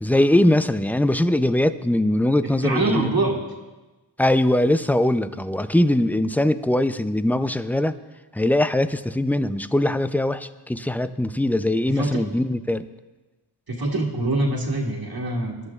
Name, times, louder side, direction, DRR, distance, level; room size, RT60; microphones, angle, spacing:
voice 1, 0.0-3.1 4.2-8.0 8.3-12.9, left 1 dB, 5° left, 11 dB, 0.4 m, -21 dB
voice 2, 2.6-3.4 11.9-12.3 13.7-15.5, right 2 dB, 55° right, -2 dB, 1.8 m, -24 dB
20.0 x 11.0 x 2.4 m, 1.2 s
cardioid pair, 55°, 44 cm